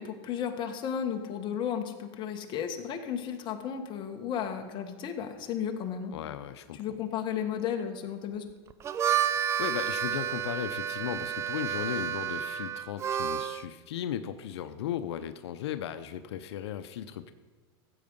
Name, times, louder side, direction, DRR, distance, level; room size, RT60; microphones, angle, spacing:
voice 1, 0.0-6.1 6.7-8.4, left 8 dB, 35° left, 5 dB, 1.4 m, -34 dB
voice 2, 6.1-6.8 9.0-17.3, left 10 dB, 90° left, 10 dB, 0.7 m, -36 dB
Harmonica, 8.7-13.6, right 9 dB, 20° right, 0.3 m, -30 dB
15.0 x 7.9 x 5.4 m, 1.4 s
supercardioid pair, 140°, 14 cm